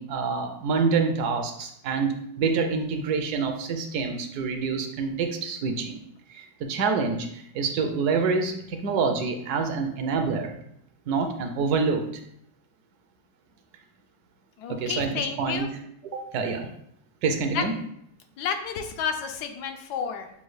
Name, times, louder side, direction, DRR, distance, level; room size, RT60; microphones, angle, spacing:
voice 1, 0.0-6.0 6.3-10.6 11.1-12.1 14.7-15.7 16.1-16.7 17.2-17.7, right 5 dB, 75° right, 5 dB, 1.1 m, -27 dB
voice 2, 14.6-15.7 17.5-17.6 18.4-20.3, left 7 dB, 80° left, 6 dB, 1.1 m, -31 dB
6.8 x 2.3 x 3.1 m, 0.72 s
omnidirectional pair, 1.7 m